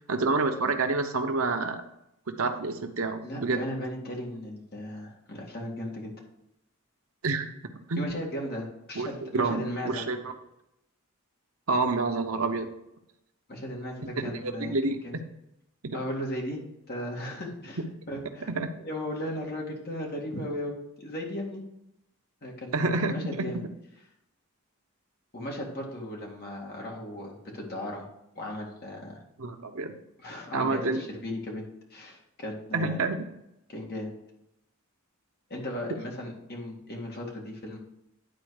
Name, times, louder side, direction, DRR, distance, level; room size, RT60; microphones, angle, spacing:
voice 1, 0.1-1.8 2.4-3.6 7.2-7.5 7.9-8.1 9.0-9.1 9.3-10.3 11.7-12.7 14.2-15.0 15.8-16.0 18.5-18.7 22.7-23.2 29.4-29.9 30.5-31.0 32.7-33.3, right 3 dB, 70° right, 6 dB, 0.9 m, -28 dB
voice 2, 3.2-6.1 8.0-10.0 13.5-14.8 15.0-15.2 15.9-16.6 16.9-17.8 18.1-18.5 18.8-21.6 22.4-23.6 25.3-28.1 28.3-29.2 30.2-33.0 33.7-34.1 35.5-37.8, left 1 dB, 45° left, -1 dB, 2.2 m, -36 dB
10.5 x 4.4 x 4.9 m, 0.84 s
head